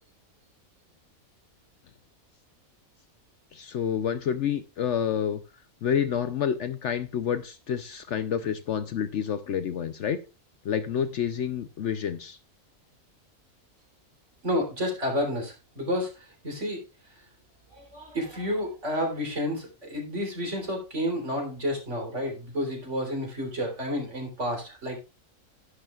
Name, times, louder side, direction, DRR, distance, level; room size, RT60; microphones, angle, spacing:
voice 1, 3.5-5.4 5.8-10.2 10.6-12.4, left 8 dB, 60° left, 11 dB, 0.9 m, -28 dB
voice 2, 14.4-16.8 17.7-25.0, equal, 55° right, 0 dB, 4.0 m, -30 dB
11.5 x 11.5 x 2.4 m, 0.30 s
omnidirectional pair, 1.5 m